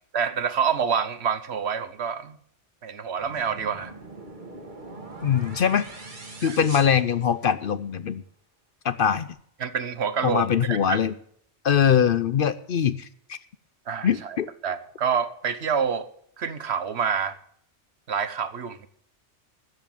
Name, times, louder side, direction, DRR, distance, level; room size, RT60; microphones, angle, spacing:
voice 1, 0.1-2.4 2.8-3.9 6.4-6.6 9.6-11.0 13.9-14.4 14.6-16.1 16.4-17.4 18.1-18.9, right 7 dB, 65° right, 13 dB, 1.2 m, -27 dB
sound 1, 3.2-7.8, right 2 dB, 40° right, 2.0 m, -42 dB
voice 2, 5.2-5.8 6.4-8.2 8.8-9.3 10.2-11.1 11.6-13.4 14.0-14.5, left 8 dB, 55° left, 14 dB, 0.7 m, -22 dB
13.5 x 8.3 x 7.2 m, 0.66 s
omnidirectional pair, 1.2 m